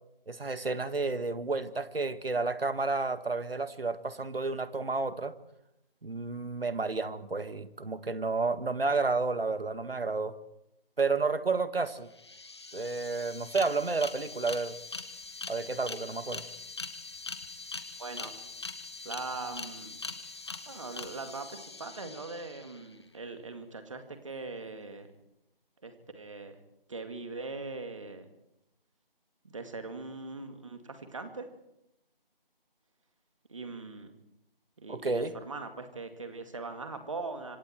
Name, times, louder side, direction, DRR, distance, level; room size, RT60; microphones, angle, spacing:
voice 1, 0.3-5.4 6.0-10.4 11.0-12.1 12.7-14.8 15.5-16.5 34.9-35.3, right 3 dB, 80° right, 12 dB, 1.8 m, -31 dB
sound 1, 11.9-12.0 12.1-22.9, left 3 dB, 30° left, 1.4 m, -42 dB
voice 2, 18.0-18.3 19.0-20.0 20.7-25.1 25.8-26.6 26.9-28.3 29.4-31.5 33.5-34.1 34.8-37.6, right 3 dB, 35° right, 7 dB, 2.3 m, -41 dB
26.5 x 26.0 x 4.6 m, 0.85 s
figure-of-eight pair, 175°, 29 cm